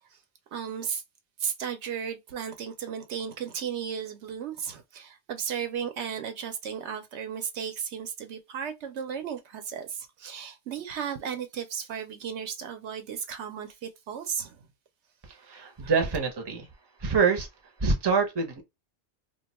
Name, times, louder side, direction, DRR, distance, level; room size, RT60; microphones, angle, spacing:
voice 1, 0.5-1.0 1.4-14.7 15.8-15.9, right 7 dB, 75° right, 0.9 m, -35 dB
voice 2, 15.2-16.7 17.0-17.5 17.8-18.6, right 5 dB, 25° right, 0.7 m, -26 dB
2.5 x 2.3 x 4.0 m
omnidirectional pair, 1.2 m